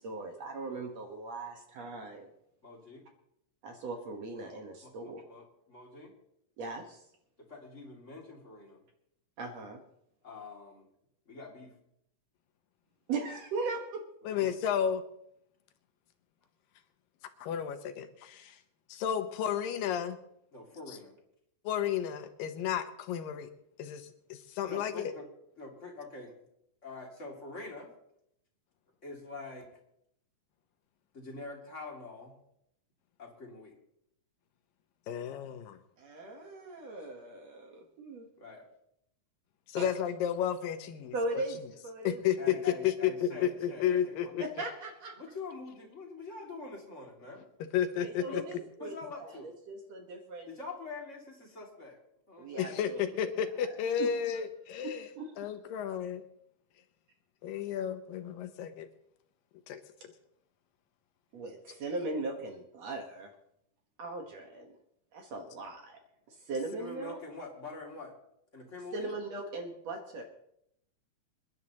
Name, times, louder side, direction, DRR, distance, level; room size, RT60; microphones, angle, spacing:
voice 1, 0.0-2.3 3.6-5.2 6.6-7.0 9.4-9.8 13.1-14.0 36.0-38.3 39.8-39.9 41.1-42.2 42.5-42.6 44.4-45.2 48.0-50.6 52.4-53.0 54.0-54.1 54.8-55.3 61.3-63.3 64.0-64.7 65.1-66.0 66.3-67.2 68.9-70.2, right 3 dB, 60° right, 3 dB, 2.2 m, -39 dB
voice 2, 2.6-3.0 4.8-6.1 7.4-8.8 10.2-10.9 11.3-11.7 14.3-14.5 20.5-21.1 24.7-25.3 25.6-26.4 26.8-27.9 29.0-29.7 31.1-32.4 33.2-33.7 38.4-38.7 42.4-44.3 45.2-47.4 48.3-48.5 48.8-49.5 50.5-52.0 52.3-52.9 66.7-68.1 68.5-69.1, left 3 dB, 25° left, -1 dB, 2.2 m, -45 dB
voice 3, 14.2-15.0 17.4-18.6 18.9-20.2 21.6-23.5 23.8-25.1 35.1-35.8 39.7-41.4 42.0-44.4 47.7-48.4 52.6-55.1 55.4-56.2 57.4-58.9 59.7-59.8, left 9 dB, 80° left, 9 dB, 2.5 m, -32 dB
27.5 x 11.0 x 2.9 m, 0.76 s
omnidirectional pair, 4.0 m